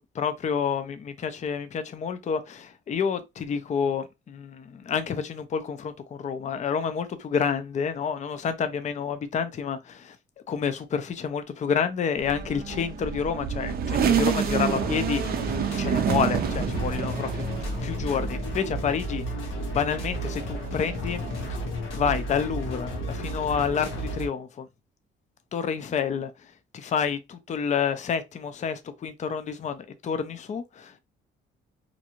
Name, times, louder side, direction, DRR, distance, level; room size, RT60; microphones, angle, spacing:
voice 1, 0.2-5.9 6.2-10.2 10.5-17.4 17.8-19.3 19.7-21.2 21.9-24.7 25.5-26.3 26.7-31.0, left 6 dB, 35° left, 0.4 m, -29 dB
sound 1, 12.2-19.1 19.5-21.5, right 8 dB, 50° right, 0.4 m, -29 dB
sound 2, 14.0-24.3, equal, 85° left, 0.9 m, -33 dB
2.5 x 2.3 x 2.9 m
cardioid pair, 90°, 20 cm